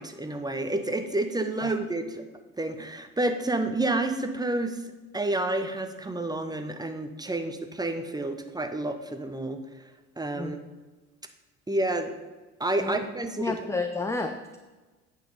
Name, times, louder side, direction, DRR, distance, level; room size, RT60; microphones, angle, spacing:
voice 1, 0.0-2.2 2.6-4.8 5.1-9.6 10.2-10.6 11.7-12.1 12.6-13.6, right 2 dB, 10° right, 7 dB, 1.0 m, -29 dB
voice 2, 13.4-14.6, left 3 dB, 5° left, 7 dB, 0.5 m, -31 dB
8.8 x 5.7 x 5.5 m, 1.2 s
figure-of-eight pair, 55°, 42 cm